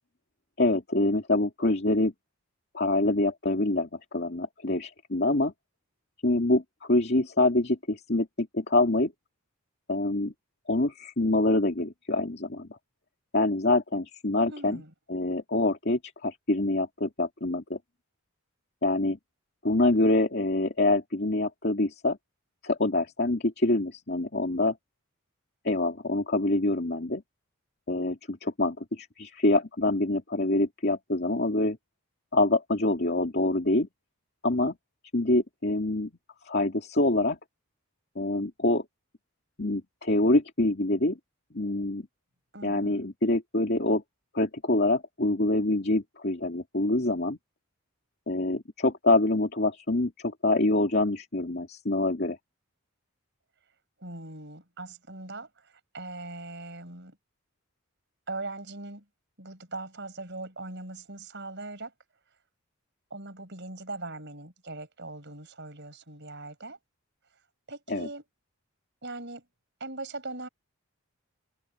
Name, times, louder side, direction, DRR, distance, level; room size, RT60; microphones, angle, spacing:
voice 1, 0.6-2.1 2.7-5.5 6.2-9.1 9.9-10.3 10.7-12.7 13.3-14.8 15.1-17.8 18.8-19.2 19.6-22.2 22.6-24.8 25.6-27.2 27.9-31.8 32.3-33.9 34.4-34.7 35.1-36.1 36.4-37.4 38.2-38.8 39.6-41.2 41.5-42.1 42.6-44.0 44.3-47.4 48.3-52.4 67.9-68.1, left 2 dB, 45° left, 2.5 m, -25 dB
voice 2, 14.5-14.9 42.5-43.0 54.0-57.2 58.3-59.0 59.4-61.9 63.1-66.8 67.7-68.2 69.0-69.4 69.8-70.5, right 2 dB, 50° right, 6.7 m, -40 dB
open air
head